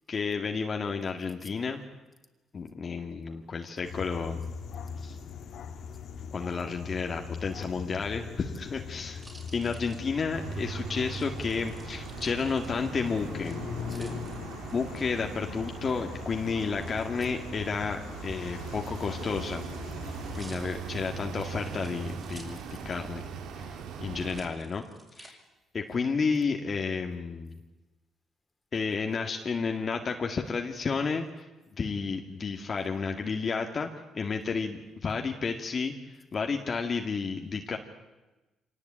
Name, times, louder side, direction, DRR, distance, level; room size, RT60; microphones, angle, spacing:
voice 1, 0.1-1.8 2.5-4.4 5.0-5.2 6.3-9.2 9.5-13.6 14.7-19.6 20.0-22.6 22.9-23.2 23.6-24.8 25.2-25.4 25.7-27.6 28.7-31.5 31.8-33.9 34.1-37.8, left 5 dB, 45° left, 2.0 m, -31 dB
voice 2, 3.0-3.5 4.9-5.1 6.6-6.7 13.9-14.4, left 2 dB, 15° left, 3.0 m, -47 dB
sound 1, 3.8-20.4, left 6 dB, 70° left, 2.1 m, -41 dB
sound 2, 8.2-10.6 11.1-13.1 13.4-15.0 16.8-17.3 18.3-23.2 23.5-23.6 24.2-25.3 25.9-26.5, right 2 dB, 25° right, 6.2 m, -54 dB
sound 3, 10.3-24.5, right 6 dB, 85° right, 2.5 m, -40 dB
25.0 x 18.5 x 8.8 m
cardioid pair, 90°, 0 cm